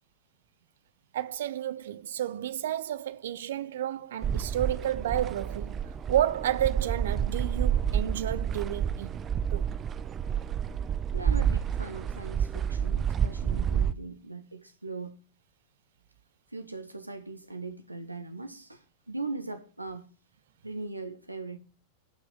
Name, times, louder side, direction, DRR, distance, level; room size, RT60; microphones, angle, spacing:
voice 1, 1.1-9.2 9.5-9.7, right 11 dB, 60° right, 0.9 m, -31 dB
sound 1, 4.2-13.9, right 8 dB, 25° right, 0.7 m, -29 dB
voice 2, 11.1-15.2 16.5-20.1 20.6-21.6, right 3 dB, 85° right, 1.3 m, -39 dB
17.5 x 6.1 x 7.2 m
figure-of-eight pair, 90°, 0 cm